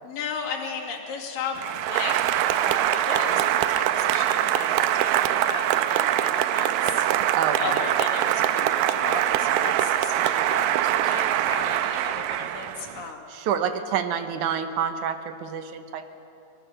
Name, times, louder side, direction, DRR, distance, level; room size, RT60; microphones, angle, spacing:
voice 1, 0.0-2.2 2.5-7.1 7.6-13.3, left 5 dB, 75° left, 0 dB, 3.9 m, -35 dB
Applause, 1.6-13.1, right 12 dB, 85° right, 2.4 m, -23 dB
voice 2, 7.3-7.7 13.3-16.2, right 8 dB, 70° right, 8 dB, 2.3 m, -28 dB
23.5 x 20.0 x 6.7 m, 2.8 s
omnidirectional pair, 3.9 m